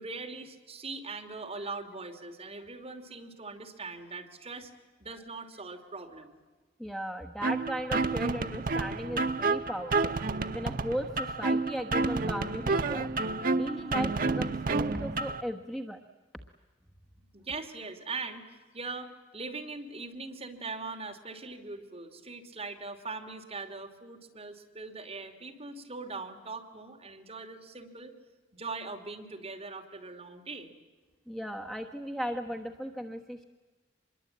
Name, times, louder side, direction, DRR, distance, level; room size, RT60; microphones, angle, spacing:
voice 1, 0.0-4.7 5.0-6.4 17.3-28.1 28.5-30.7, right 3 dB, 30° right, 3 dB, 2.8 m, -41 dB
voice 2, 6.8-10.2 10.5-13.1 13.5-16.0 31.3-33.4, equal, ahead, 4 dB, 1.1 m, -37 dB
sound 1, 7.4-15.4, right 3 dB, 50° right, 0.9 m, -30 dB
25.5 x 22.0 x 8.7 m, 1.3 s
head